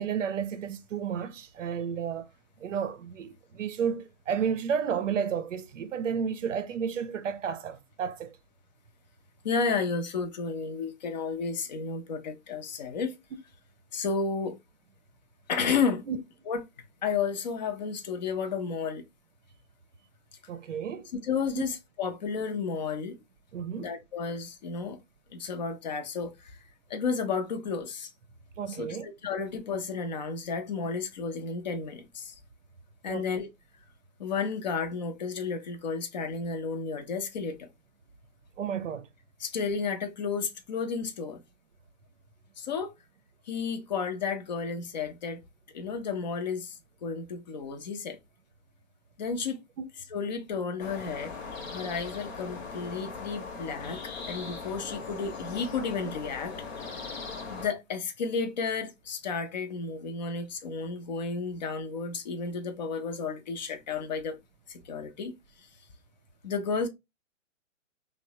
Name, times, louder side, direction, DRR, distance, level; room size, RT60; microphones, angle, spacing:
voice 1, 0.0-2.3 2.6-8.4 16.1-16.2 20.5-21.1 21.5-21.6 23.5-23.9 28.6-29.1 33.1-33.3 38.6-39.1, right 7 dB, 70° right, 0.6 m, -32 dB
voice 2, 9.4-13.2 13.9-14.6 15.5-16.0 16.5-16.6 17.0-19.0 21.1-23.2 23.7-25.0 25.3-26.6 26.9-28.1 28.7-32.3 33.0-33.5 34.2-37.7 39.4-41.4 42.6-42.9 43.5-45.4 45.7-48.2 49.2-49.6 50.1-51.3 51.6-56.5 56.9-57.0 57.5-64.4 64.7-65.3 66.4-66.9, left 5 dB, 35° left, 0.5 m, -32 dB
sound 1, 50.8-57.7, left 4 dB, 55° left, 0.8 m, -39 dB
3.2 x 2.1 x 2.7 m
figure-of-eight pair, 135°, 40 cm